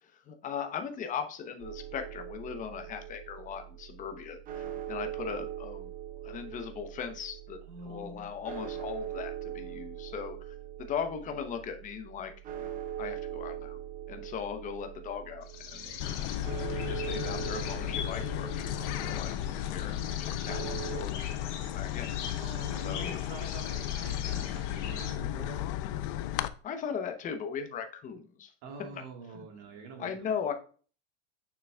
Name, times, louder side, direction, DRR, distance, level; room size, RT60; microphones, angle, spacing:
voice 1, 0.0-5.9 6.2-12.3 13.0-13.8 14.1-15.9 16.7-22.1 22.8-23.3 26.6-28.5 28.9-29.0 29.3-29.5 30.0-30.5, left 7 dB, 20° left, 6 dB, 0.8 m, -39 dB
sound 1, 1.6-21.0, right 11 dB, 25° right, 0.6 m, -41 dB
voice 2, 7.6-8.4 22.4-25.6 28.6-30.1, right 4 dB, 45° right, 2 dB, 1.6 m, -46 dB
sound 2, 15.4-25.1, left 7 dB, 85° left, 1.8 m, -43 dB
sound 3, 16.0-26.5, left 12 dB, 50° left, 0.5 m, -34 dB
7.0 x 6.0 x 2.3 m, 0.39 s
supercardioid pair, 150°, 35 cm